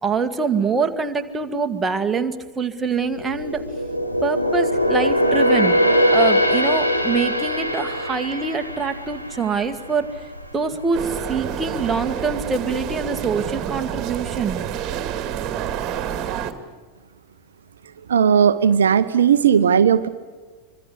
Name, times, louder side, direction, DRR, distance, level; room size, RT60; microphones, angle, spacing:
voice 1, 0.0-3.6 4.2-5.7 6.1-10.2 10.5-14.6, right 5 dB, 15° right, 5 dB, 1.9 m, -24 dB
sound 1, 3.0-10.5 10.9-11.1 11.7-12.4 12.7-12.8, equal, 90° left, 3.3 m, -21 dB
sound 2, 10.9-16.5, right 9 dB, 35° right, 2.3 m, -28 dB
voice 2, 18.1-20.1, right 7 dB, 65° right, 12 dB, 0.8 m, -16 dB
25.5 x 24.5 x 8.4 m, 1.4 s
figure-of-eight pair, 90°, 0 cm